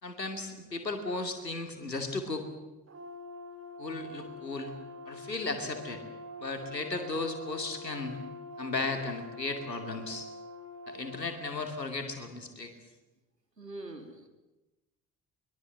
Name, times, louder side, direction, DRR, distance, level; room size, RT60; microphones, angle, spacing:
voice 1, 0.0-2.5 3.8-4.7 5.1-6.0 6.4-8.2 8.6-10.3 10.9-12.7, left 3 dB, 85° left, 6 dB, 2.6 m, -35 dB
Brass instrument, 2.9-11.3, left 2 dB, 30° right, 3.5 m, -45 dB
voice 2, 13.6-14.3, right 2 dB, 90° right, 6 dB, 2.3 m, -43 dB
23.0 x 22.0 x 7.9 m, 1.0 s
figure-of-eight pair, 55°, 48 cm